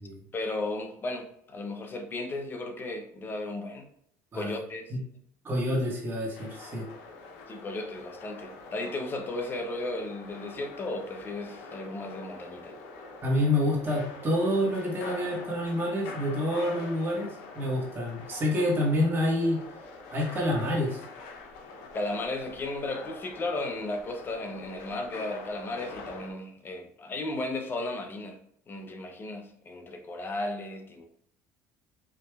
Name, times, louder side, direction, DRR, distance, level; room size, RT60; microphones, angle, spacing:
voice 1, 0.3-3.9 4.3-4.9 7.5-12.8 21.9-28.4 28.7-31.0, left 2 dB, 30° left, 0.7 m, -35 dB
voice 2, 5.4-6.9 13.2-17.3 17.5-19.6 20.1-21.0, left 1 dB, 35° right, 1.5 m, -27 dB
sound 1, 6.3-26.3, left 3 dB, 90° left, 0.7 m, -45 dB
4.8 x 3.1 x 2.3 m
supercardioid pair, 105°, 7 cm